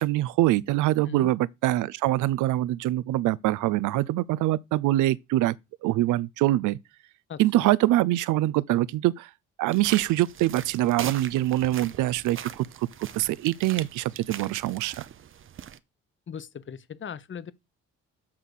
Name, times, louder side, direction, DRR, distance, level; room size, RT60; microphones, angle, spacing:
voice 1, 0.0-5.6 5.8-6.8 7.4-9.3 9.6-12.9 13.1-15.1, right 16 dB, 85° right, 0.5 m, -24 dB
voice 2, 7.3-7.7 16.3-17.5, left 7 dB, 40° left, 0.9 m, -39 dB
sound 1, 9.7-15.8, right 9 dB, 45° right, 0.6 m, -41 dB
7.3 x 3.8 x 6.3 m
cardioid pair, 90°, 30 cm